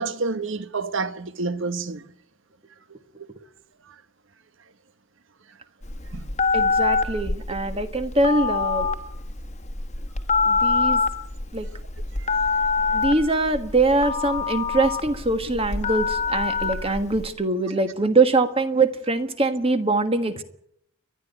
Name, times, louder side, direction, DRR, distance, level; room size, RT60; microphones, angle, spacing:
voice 1, 0.0-2.0 6.1-6.2 12.2-12.3, right 3 dB, 60° right, 1.0 m, -28 dB
Telephone, 5.8-17.3, left 4 dB, 30° left, 1.3 m, -24 dB
voice 2, 6.5-8.9 10.5-11.0 11.5-11.7 12.9-20.4, right 2 dB, 25° right, 1.4 m, -23 dB
30.0 x 11.5 x 9.2 m
head